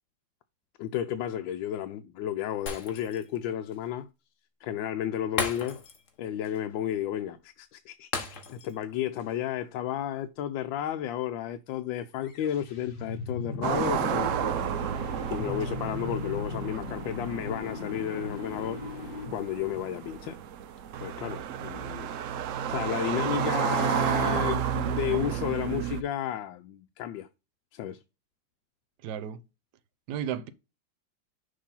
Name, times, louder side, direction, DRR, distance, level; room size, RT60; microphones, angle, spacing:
voice 1, 0.8-4.1 4.6-5.8 6.2-14.6 15.3-18.8 19.3-20.4 21.0-22.1 22.7-27.3 27.7-28.0, left 11 dB, 90° left, 1.4 m, -32 dB
Shatter, 2.7-3.4 3.7-3.8 5.4-6.1 6.4-6.6 8.1-8.8 9.2-9.3, left 5 dB, 45° left, 1.5 m, -35 dB
sound 1, 12.1-20.3, left 2 dB, 65° left, 1.8 m, -38 dB
sound 2, 13.6-26.0, right 9 dB, 85° right, 0.6 m, -32 dB
voice 2, 29.0-29.4 30.1-30.5, right 9 dB, 65° right, 1.2 m, -33 dB
6.6 x 3.1 x 5.3 m
omnidirectional pair, 2.0 m